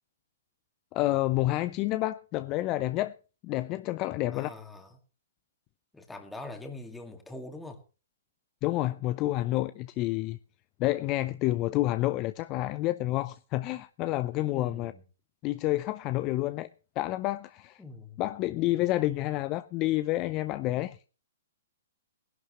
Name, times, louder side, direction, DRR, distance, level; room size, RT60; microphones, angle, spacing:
voice 1, 0.9-3.1 3.4-4.5 8.6-10.4 10.8-14.9 15.4-16.7 17.0-17.8 18.2-21.0, left 17 dB, 30° left, 0.5 m, -29 dB
voice 2, 4.3-5.0 5.9-7.8 14.5-15.0 17.8-18.2, left 2 dB, 5° left, 2.1 m, -43 dB
19.0 x 11.5 x 3.1 m
figure-of-eight pair, 120°, 0 cm